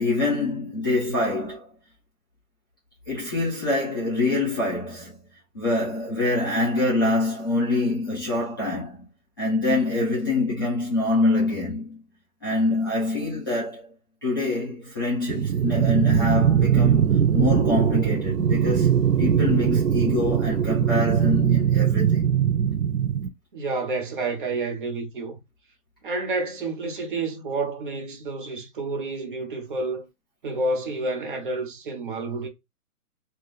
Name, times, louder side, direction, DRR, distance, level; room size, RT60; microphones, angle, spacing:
voice 1, 0.0-1.7 3.1-5.2 5.5-9.1 9.4-12.0 12.4-13.9 14.2-22.3, left 2 dB, 15° left, 0.5 m, -25 dB
sound 1, 15.3-23.3, right 9 dB, 70° right, 0.6 m, -21 dB
voice 2, 23.5-25.4 26.0-30.1 30.4-32.5, right 3 dB, 35° right, 0.7 m, -29 dB
2.5 x 2.3 x 3.3 m
hypercardioid pair, 145°, 45 cm